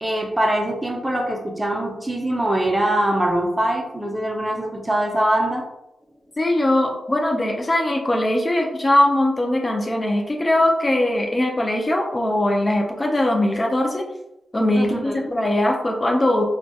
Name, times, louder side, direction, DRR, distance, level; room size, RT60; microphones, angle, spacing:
voice 1, 0.0-5.7 14.7-15.3, right 1 dB, 15° right, 1 dB, 0.5 m, -23 dB
voice 2, 6.4-14.0 14.5-16.4, left 1 dB, 30° left, 2 dB, 0.4 m, -20 dB
2.6 x 2.2 x 2.3 m, 0.88 s
supercardioid pair, 45°, 0 cm